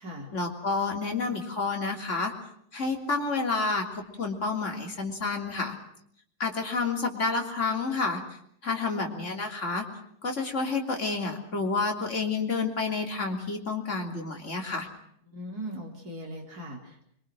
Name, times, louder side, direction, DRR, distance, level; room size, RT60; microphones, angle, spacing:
voice 1, 0.3-2.3 2.7-5.8 6.4-8.2 8.6-9.9 10.2-14.9, left 4 dB, 45° left, 2 dB, 3.6 m, -29 dB
voice 2, 15.3-17.1, equal, 70° right, 0 dB, 4.5 m, -39 dB
26.0 x 23.5 x 6.3 m, 0.68 s
omnidirectional pair, 1.7 m